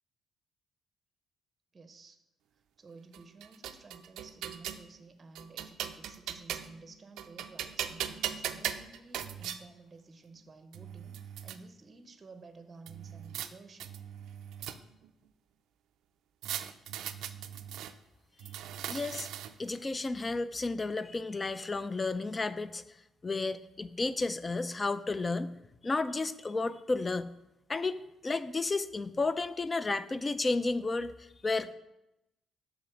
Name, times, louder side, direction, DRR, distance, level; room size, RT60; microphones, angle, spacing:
voice 1, 1.7-2.2 2.8-13.9, right 3 dB, 35° right, 9 dB, 0.6 m, -53 dB
sound 1, 3.1-4.8 5.4-6.8 7.2-9.6 10.4-10.5 10.7-11.6 12.9-13.5 13.8-15.1 16.4-17.9 18.4-19.7, right 10 dB, 85° right, 0.4 m, -39 dB
voice 2, 18.8-19.3 19.6-22.8 23.2-25.5 25.8-27.3 27.7-31.7, left 3 dB, 25° left, 13 dB, 0.4 m, -32 dB
6.4 x 3.9 x 6.2 m, 0.91 s
cardioid pair, 90°, 0 cm